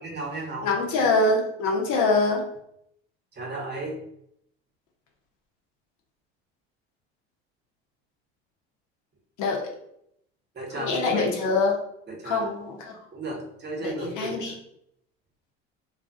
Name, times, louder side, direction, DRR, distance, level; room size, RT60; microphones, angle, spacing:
voice 1, 0.0-0.7 3.4-4.0 10.5-11.2 12.1-12.5 13.1-14.6, right 2 dB, 30° right, 0 dB, 0.8 m, -34 dB
voice 2, 0.6-2.4 9.4-9.6 10.7-11.8 12.2-12.9 13.8-14.5, left 3 dB, 60° left, 0 dB, 0.8 m, -24 dB
2.4 x 2.3 x 2.5 m, 0.74 s
hypercardioid pair, 75°, 33 cm